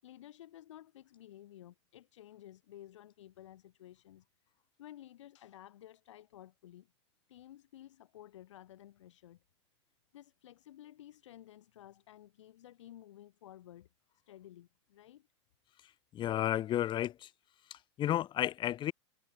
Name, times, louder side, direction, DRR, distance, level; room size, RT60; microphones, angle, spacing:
voice 1, 0.0-4.2 4.8-6.9 7.3-9.4 10.1-13.9 14.3-15.3, left 12 dB, 75° left, 6.6 m, -54 dB
voice 2, 16.1-17.3 17.7-18.9, left 12 dB, 30° left, 1.3 m, -32 dB
hypercardioid pair, 120°, 15 cm